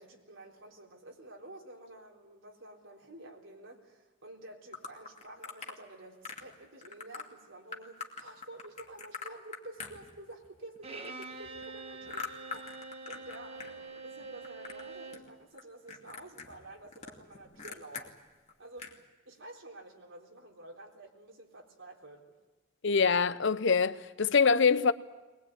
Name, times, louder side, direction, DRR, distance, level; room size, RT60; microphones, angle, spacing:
voice 1, 0.0-12.8 13.0-18.2 18.6-18.9 19.3-22.4, right 2 dB, 75° right, 3.8 m, -50 dB
sound 1, 4.7-5.8 6.2-6.5 6.8-7.2 7.7-10.5 10.8-13.7 14.0-14.9 15.1-15.6 15.9-18.1 18.5-18.6 18.8-19.0, left 5 dB, 35° left, 2.5 m, -43 dB
Bowed string instrument, 10.8-15.3, right 3 dB, 30° right, 1.6 m, -45 dB
voice 2, 22.8-24.9, left 5 dB, 65° left, 0.8 m, -24 dB
21.0 x 20.5 x 9.2 m
head